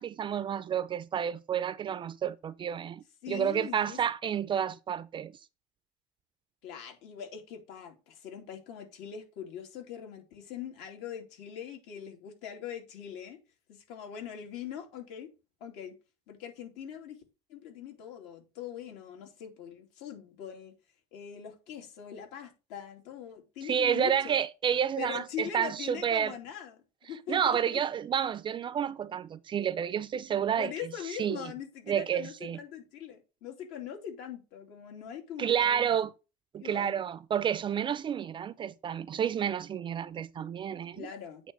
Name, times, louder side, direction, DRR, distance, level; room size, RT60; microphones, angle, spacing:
voice 1, 0.0-5.3 23.7-26.3 27.3-30.7 31.2-31.5 31.9-32.6 35.4-36.1 36.5-41.1, right 8 dB, 30° right, 0.4 m, -30 dB
voice 2, 3.2-4.0 6.6-13.4 13.7-15.3 15.6-15.9 16.3-17.2 17.5-20.7 21.1-24.4 25.0-26.8 27.1-27.8 30.6-36.0 36.6-37.0 40.9-41.4, left 9 dB, 70° left, 2.6 m, -42 dB
8.6 x 3.3 x 6.2 m
cardioid pair, 125°, 18 cm